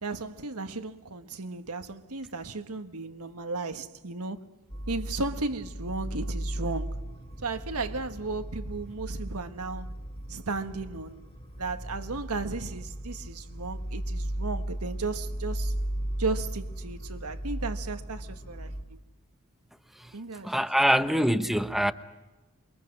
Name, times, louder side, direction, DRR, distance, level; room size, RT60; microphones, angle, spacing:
voice 1, 0.0-4.4 4.9-7.0 7.4-9.9 10.3-11.2 11.6-15.7 16.2-19.0 20.1-21.0, right 3 dB, 85° right, 1.5 m, -35 dB
sound 1, 4.7-18.8, right 1 dB, 25° left, 3.4 m, -36 dB
voice 2, 20.4-21.9, equal, ahead, 1.0 m, -24 dB
28.5 x 24.0 x 6.0 m
head